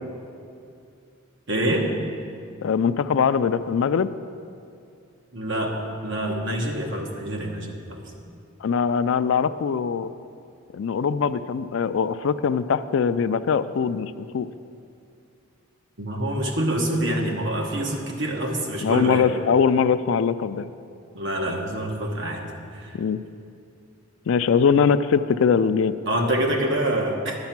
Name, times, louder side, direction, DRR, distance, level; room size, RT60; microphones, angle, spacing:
voice 1, 1.5-1.9 5.3-5.7 6.0-8.0 16.0-19.3 21.1-23.0 26.0-27.3, right 1 dB, 60° right, 0 dB, 1.3 m, -26 dB
voice 2, 2.6-4.1 8.6-10.1 10.7-14.5 18.8-20.7 23.0-23.2 24.3-26.0, left 6 dB, 70° left, 13 dB, 0.3 m, -22 dB
10.5 x 8.0 x 6.0 m, 2.4 s
head